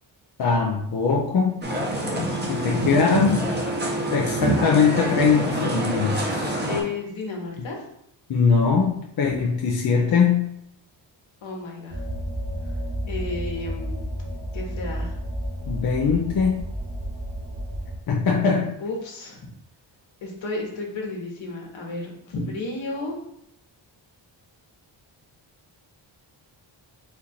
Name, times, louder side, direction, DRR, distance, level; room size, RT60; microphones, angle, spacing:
voice 1, 0.4-1.6 2.2-3.5 4.1-6.6 8.3-10.5 15.7-16.6 18.1-18.8, left 5 dB, 50° left, 0 dB, 0.6 m, -21 dB
sound 1, 1.6-6.8, right 1 dB, 20° right, 0.9 m, -26 dB
voice 2, 6.7-7.8 11.4-12.0 13.1-14.1 14.5-15.1 18.8-19.4 20.2-23.2, left 3 dB, 75° left, -1 dB, 1.4 m, -32 dB
sound 2, 11.9-18.0, equal, 40° right, 1.5 m, -31 dB
4.3 x 2.5 x 4.3 m, 0.75 s
wide cardioid pair, 135°, 46 cm